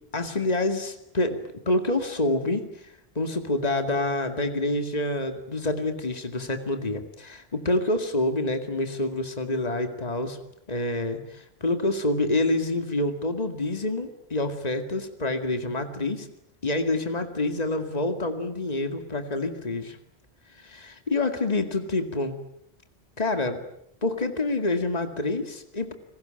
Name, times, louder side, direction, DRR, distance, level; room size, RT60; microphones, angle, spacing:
voice 1, 0.1-10.4 10.7-16.3 16.6-20.0 20.6-22.4 23.2-23.6 24.0-25.9, left 2 dB, 40° left, 7 dB, 2.3 m, -27 dB
30.0 x 21.5 x 9.0 m, 0.74 s
omnidirectional pair, 1.1 m